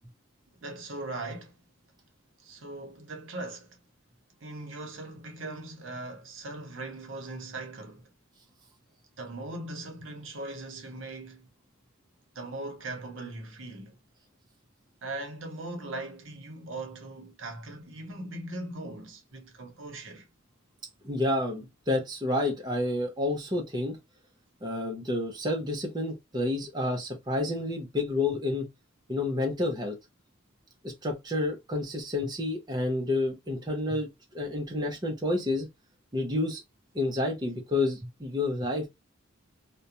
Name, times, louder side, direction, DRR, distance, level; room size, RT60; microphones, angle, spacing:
voice 1, 0.6-1.6 2.4-3.8 4.4-8.1 9.2-11.5 12.3-14.0 15.0-20.3 22.4-22.5, right 2 dB, 65° right, 0.8 m, -40 dB
voice 2, 21.0-24.0 24.6-28.7 29.1-30.0 30.8-35.7 36.1-36.6 36.9-38.9, left 2 dB, 20° right, 0.6 m, -29 dB
2.4 x 2.1 x 2.8 m
head